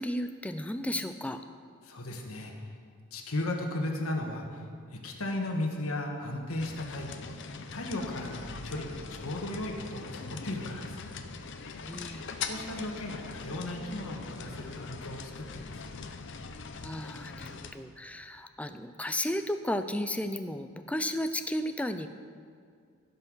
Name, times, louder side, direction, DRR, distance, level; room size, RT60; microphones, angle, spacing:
voice 1, 0.0-1.4 11.8-12.3 16.8-22.1, left 1 dB, 5° left, 9 dB, 0.3 m, -34 dB
voice 2, 1.8-2.8 3.1-11.1 12.4-15.9, left 1 dB, 75° left, 1 dB, 1.4 m, -36 dB
sound 1, 6.6-17.7, left 5 dB, 55° left, 0.6 m, -41 dB
15.5 x 5.6 x 6.2 m, 2.2 s
head